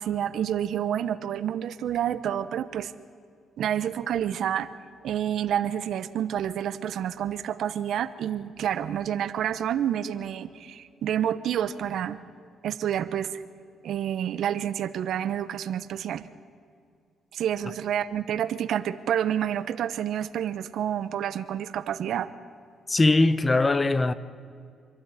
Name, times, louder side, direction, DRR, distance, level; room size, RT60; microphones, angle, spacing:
voice 1, 0.0-2.9 3.6-4.7 5.0-12.2 12.6-13.4 13.8-16.2 17.3-22.3, right 10 dB, 70° right, 0.9 m, -29 dB
voice 2, 22.9-24.1, left 2 dB, 25° left, 0.9 m, -21 dB
26.0 x 12.5 x 9.7 m
cardioid pair, 90°, 0 cm